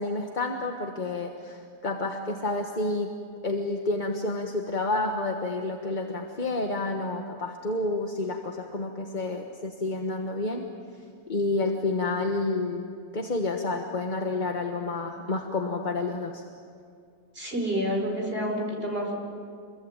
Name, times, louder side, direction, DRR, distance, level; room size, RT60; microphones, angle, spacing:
voice 1, 0.0-3.1 3.4-10.6 11.3-16.4, left 2 dB, 30° left, 2 dB, 1.3 m, -29 dB
voice 2, 17.3-19.2, equal, 30° right, 0 dB, 5.0 m, -28 dB
27.0 x 22.5 x 8.9 m, 2.3 s
omnidirectional pair, 1.9 m